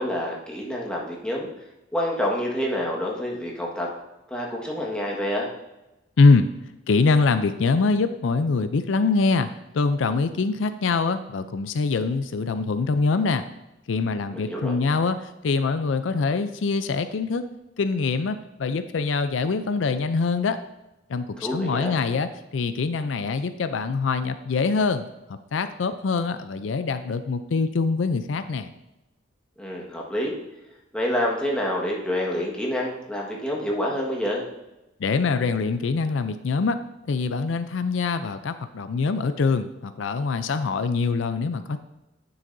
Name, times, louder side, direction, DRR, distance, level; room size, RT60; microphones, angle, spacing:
voice 1, 0.0-1.5 1.9-3.9 4.3-5.5 14.3-14.7 21.4-21.9 29.6-30.3 30.9-34.4, equal, 5° left, -3 dB, 1.5 m, -27 dB
voice 2, 6.2-6.5 6.9-13.4 13.9-17.5 17.8-20.6 21.1-25.0 25.5-28.7 35.0-36.8 37.1-41.8, left 4 dB, 85° left, 11 dB, 0.5 m, -24 dB
9.3 x 7.0 x 2.6 m, 0.97 s
head